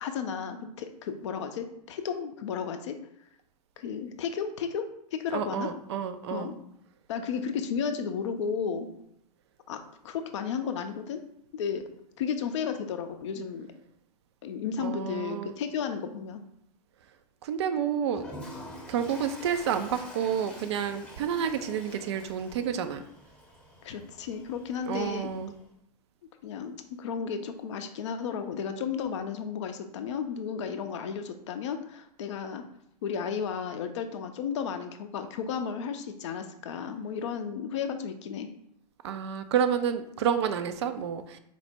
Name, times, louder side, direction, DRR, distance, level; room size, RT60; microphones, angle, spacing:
voice 1, 0.0-3.0 3.8-5.7 6.3-6.5 7.1-8.9 9.7-9.8 10.0-11.2 11.5-13.7 14.4-16.4 23.8-25.3 26.4-32.6 33.0-38.5, left 6 dB, 45° left, 8 dB, 0.5 m, -33 dB
voice 2, 5.3-6.5 14.8-15.5 17.4-18.2 18.9-23.0 24.9-25.5 39.0-41.4, right 8 dB, 40° right, 9 dB, 0.4 m, -29 dB
Toilet flush, 18.1-25.6, left 1 dB, 5° left, 0.7 m, -47 dB
4.4 x 2.1 x 4.3 m, 0.72 s
figure-of-eight pair, 115°, 21 cm